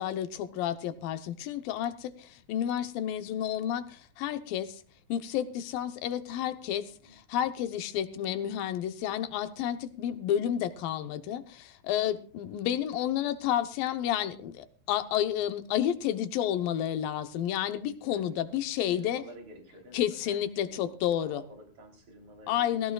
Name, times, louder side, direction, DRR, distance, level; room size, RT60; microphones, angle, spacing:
voice 1, 0.0-4.8 5.1-19.2 19.9-21.4 22.5-22.9, left 10 dB, 80° left, 10 dB, 2.7 m, -31 dB
voice 2, 18.0-18.4 18.7-22.9, right 1 dB, 40° right, 2 dB, 4.2 m, -51 dB
20.5 x 16.5 x 2.4 m, 0.41 s
omnidirectional pair, 4.0 m